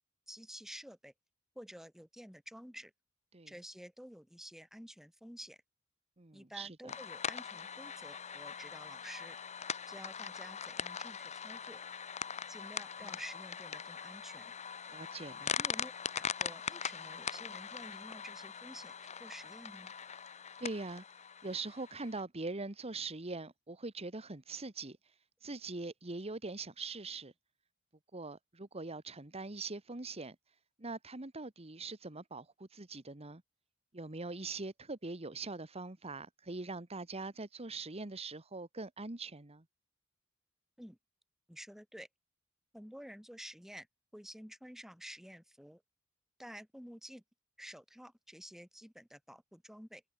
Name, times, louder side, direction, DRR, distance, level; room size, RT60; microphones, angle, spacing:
voice 1, 0.3-1.1 1.5-2.9 3.5-5.6 6.3-9.4 9.9-11.8 12.5-14.5 15.6-19.9 40.8-41.0 41.5-42.1 42.7-43.9 44.1-45.8 46.4-47.2 47.6-50.0, equal, ahead, 3.1 m, -51 dB
voice 2, 6.2-6.9 13.0-13.1 14.9-15.5 20.6-21.0 21.4-25.0 25.4-27.3 28.1-30.3 30.8-33.4 33.9-39.6, right 3 dB, 30° right, 1.5 m, -42 dB
sound 1, 6.9-22.2, left 7 dB, 35° left, 0.9 m, -42 dB
head